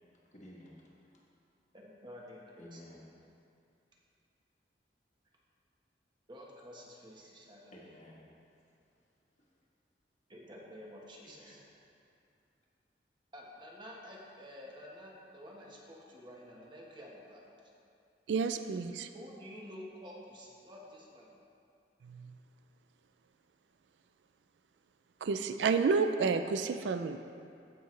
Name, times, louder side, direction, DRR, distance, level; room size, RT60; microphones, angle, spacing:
voice 1, 0.3-1.2 2.6-3.1 7.2-7.3 7.7-8.3 9.4-9.5 11.2-11.7, left 1 dB, 40° left, -4 dB, 1.5 m, -54 dB
voice 2, 1.7-3.0 6.3-7.7 10.3-11.6 13.3-17.4 19.1-21.3, equal, 25° right, -3 dB, 1.2 m, -50 dB
voice 3, 18.3-19.1 22.0-22.3 25.2-27.2, right 5 dB, 75° right, 9 dB, 0.4 m, -30 dB
15.0 x 5.5 x 3.3 m, 2.5 s
head